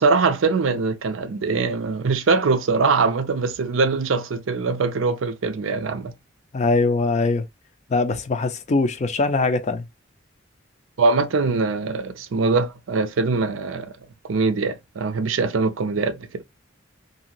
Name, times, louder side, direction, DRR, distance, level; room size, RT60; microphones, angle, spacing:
voice 1, 0.0-6.1 11.0-13.9 14.2-16.4, right 4 dB, 85° right, 0.5 m, -22 dB
voice 2, 6.5-7.5 7.9-9.9, left 3 dB, 35° left, 0.4 m, -22 dB
2.8 x 2.6 x 2.8 m
head